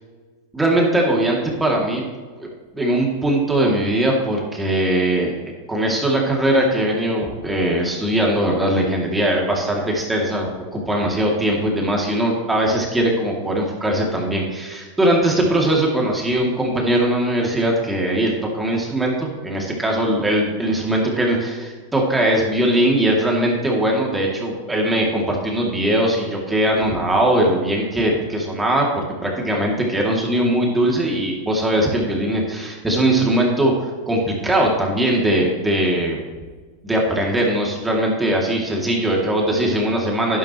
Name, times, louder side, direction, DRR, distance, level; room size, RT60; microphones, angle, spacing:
voice 1, 0.5-2.0 2.4-2.5 2.7-5.3 5.7-36.2 36.8-40.4, right 1 dB, 10° right, -1 dB, 2.7 m, -20 dB
11.0 x 11.0 x 3.2 m, 1.4 s
hypercardioid pair, 105°, 0 cm